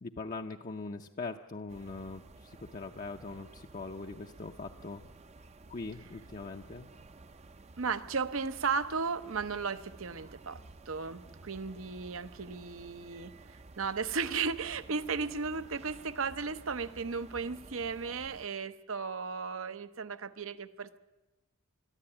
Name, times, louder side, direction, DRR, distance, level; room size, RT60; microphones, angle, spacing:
voice 1, 0.0-5.0 5.7-6.9, left 3 dB, 40° left, 2 dB, 0.6 m, -41 dB
sound 1, 1.7-18.5, right 2 dB, 30° right, 0.6 m, -53 dB
voice 2, 7.8-21.0, right 5 dB, 70° right, 12 dB, 0.8 m, -35 dB
21.5 x 13.5 x 8.8 m, 1.1 s
head